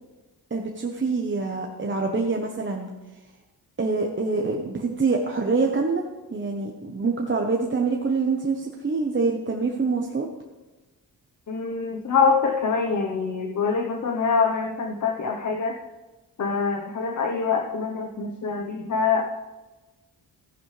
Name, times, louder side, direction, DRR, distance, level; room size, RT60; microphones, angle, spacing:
voice 1, 0.5-2.9 3.8-6.0 6.3-10.3, right 4 dB, 30° right, 1 dB, 1.0 m, -25 dB
voice 2, 11.5-15.8 16.4-19.2, left 5 dB, 45° left, 2 dB, 1.0 m, -24 dB
14.5 x 10.5 x 3.3 m, 1.1 s
wide cardioid pair, 120°, 40 cm